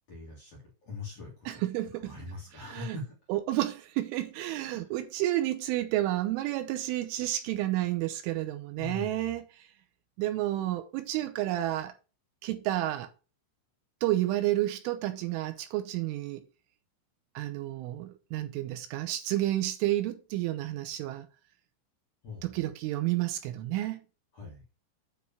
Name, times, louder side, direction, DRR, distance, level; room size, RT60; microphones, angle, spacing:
voice 1, 0.1-1.6 2.0-3.1 4.7-4.8 8.8-9.3 22.2-22.6 24.3-24.6, left 3 dB, 40° left, 2.6 m, -42 dB
voice 2, 1.5-2.2 2.5-3.0 3.3-9.7 10.2-11.9 12.4-13.1 14.0-16.4 17.4-21.3 22.4-24.0, right 15 dB, 85° right, 3.1 m, -31 dB
9.5 x 3.9 x 7.1 m
omnidirectional pair, 6.0 m